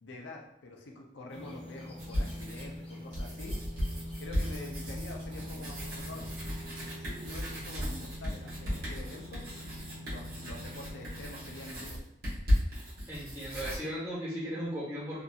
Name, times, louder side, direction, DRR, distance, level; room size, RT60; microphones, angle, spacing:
voice 1, 0.0-3.6 4.2-6.3 6.8-9.5 10.0-12.0, left 2 dB, 90° left, 1 dB, 0.5 m, -46 dB
sound 1, 1.3-11.7, equal, 35° left, 0.5 m, -44 dB
sound 2, 2.0-2.8 3.1-13.8, equal, 55° right, 1.0 m, -35 dB
voice 2, 13.1-15.2, equal, 15° right, -9 dB, 1.2 m, -36 dB
2.6 x 2.6 x 2.3 m, 0.82 s
head